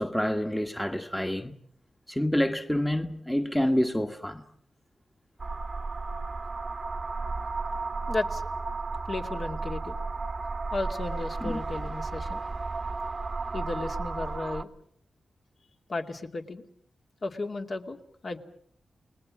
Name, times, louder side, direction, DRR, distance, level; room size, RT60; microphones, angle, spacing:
voice 1, 0.0-1.5 2.1-4.4 11.4-11.6, left 1 dB, 5° left, 1.4 m, -27 dB
sound 1, 5.4-14.6, right 3 dB, 45° right, 1.2 m, -33 dB
voice 2, 8.1-8.5 9.1-9.9 10.7-12.4 13.5-14.7 15.9-16.7 17.2-18.0 18.2-18.4, left 3 dB, 55° left, 2.5 m, -34 dB
29.5 x 20.0 x 7.4 m
cardioid pair, 80°, 0 cm